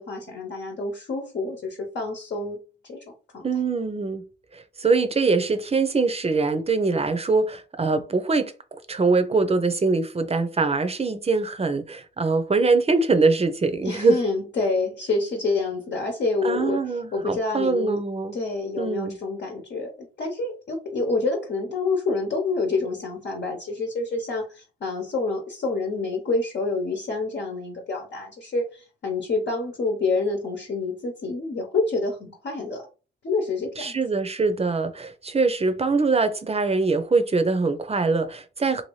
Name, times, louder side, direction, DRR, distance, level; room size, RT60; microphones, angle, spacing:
voice 1, 0.0-2.6 2.9-3.0 3.3-3.5 13.8-18.0 18.3-32.8 33.2-34.0, left 3 dB, 60° left, 1.0 m, -27 dB
voice 2, 3.4-4.2 4.5-14.2 16.4-18.4 18.8-19.2 33.8-38.8, right 3 dB, 30° right, 0.6 m, -23 dB
2.7 x 2.6 x 3.1 m
supercardioid pair, 50°, 21 cm